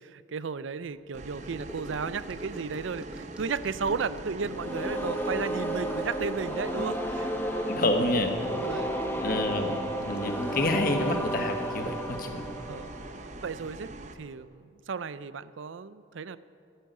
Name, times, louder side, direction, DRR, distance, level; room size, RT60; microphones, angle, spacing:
voice 1, 0.0-7.3 8.4-9.6 12.5-12.9 13.4-13.9 14.2-16.4, right 5 dB, 85° right, 15 dB, 0.5 m, -34 dB
sound 1, 1.1-14.1, right 2 dB, 40° right, 0.8 m, -43 dB
Gurgling / Sink (filling or washing) / Trickle dribble, 1.4-13.1 13.3-13.7 13.9-14.0, equal, 5° right, 0.7 m, -47 dB
sound 2, 4.5-13.4, right 1 dB, 10° left, 1.0 m, -32 dB
voice 2, 7.7-8.3 9.2-12.4, left 1 dB, 45° left, 6 dB, 1.2 m, -28 dB
12.5 x 9.1 x 9.3 m, 2.4 s
head